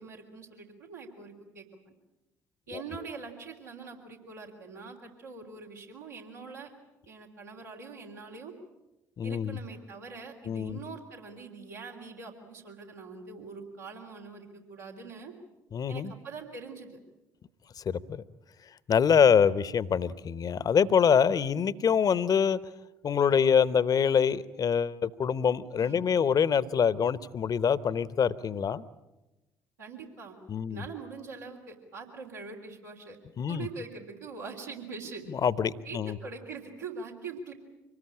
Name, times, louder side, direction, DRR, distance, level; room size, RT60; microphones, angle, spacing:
voice 1, 0.0-1.9 2.7-6.7 7.1-8.5 9.2-15.3 15.9-17.0 25.8-26.1 29.8-30.4 30.7-33.2 33.5-35.3 35.8-37.5, right 4 dB, 80° right, -2 dB, 3.3 m, -43 dB
voice 2, 9.2-9.6 10.5-10.8 15.7-16.1 17.9-18.2 18.9-22.6 23.0-28.8 30.5-30.8 33.4-33.7 35.3-36.2, left 7 dB, 40° left, 18 dB, 0.9 m, -25 dB
25.5 x 19.5 x 8.8 m, 1.0 s
figure-of-eight pair, 45°, 10 cm